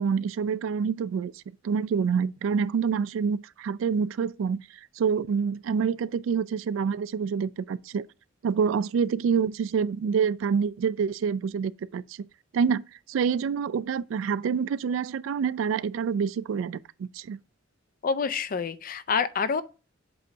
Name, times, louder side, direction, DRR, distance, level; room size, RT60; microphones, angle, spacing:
voice 1, 0.0-1.3 1.6-4.6 5.0-8.0 8.4-12.0 12.5-12.8 13.1-17.4, right 6 dB, 80° right, 0.3 m, -27 dB
voice 2, 18.0-19.6, left 5 dB, 45° left, 0.4 m, -27 dB
7.9 x 2.7 x 5.1 m
head